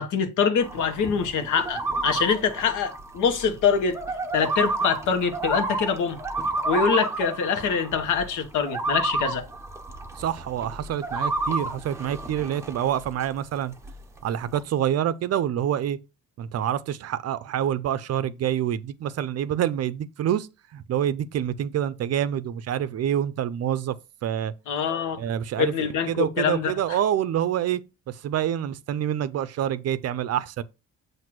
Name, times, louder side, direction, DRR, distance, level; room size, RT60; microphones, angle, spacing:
voice 1, 0.0-4.0 4.3-6.2 6.7-9.5 24.7-25.2 25.6-27.0, left 6 dB, 75° left, 1.1 m, -24 dB
sound 1, 0.6-13.4 13.7-14.6, right 3 dB, 10° right, 0.9 m, -31 dB
voice 2, 10.2-13.7 14.2-16.0 16.4-20.5 20.7-24.0 24.2-24.5 25.2-27.8 28.1-30.6, right 10 dB, 55° right, 0.5 m, -27 dB
7.7 x 2.6 x 5.9 m
cardioid pair, 135°, 31 cm